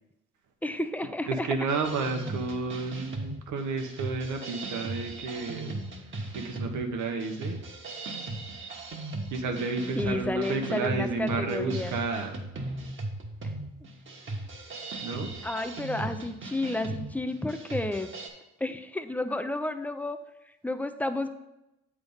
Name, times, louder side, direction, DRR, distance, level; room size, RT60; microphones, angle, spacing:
voice 1, 0.6-1.5 10.0-12.0 15.4-18.1 18.6-20.2 20.6-21.3, left 2 dB, 5° left, 8 dB, 0.5 m, -31 dB
voice 2, 1.3-5.8 6.3-7.6 9.3-12.4 15.0-15.3, right 4 dB, 80° right, 5 dB, 1.1 m, -31 dB
sound 1, 1.7-18.3, right 2 dB, 40° right, 1.5 m, -38 dB
7.8 x 3.6 x 5.4 m, 0.92 s
cardioid pair, 90°, 30 cm